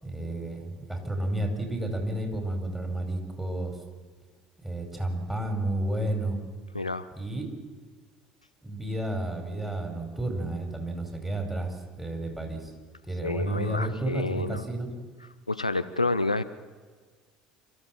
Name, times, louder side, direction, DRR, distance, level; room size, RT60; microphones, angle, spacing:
voice 1, 0.0-3.8 4.6-6.4 7.2-7.5 8.6-12.7 13.0-14.9, right 1 dB, 5° right, 3 dB, 5.1 m, -31 dB
voice 2, 6.7-7.1 13.2-14.6 15.5-16.4, left 3 dB, 85° left, 12 dB, 0.6 m, -29 dB
27.5 x 14.0 x 7.5 m, 1.5 s
figure-of-eight pair, 65°, 3 cm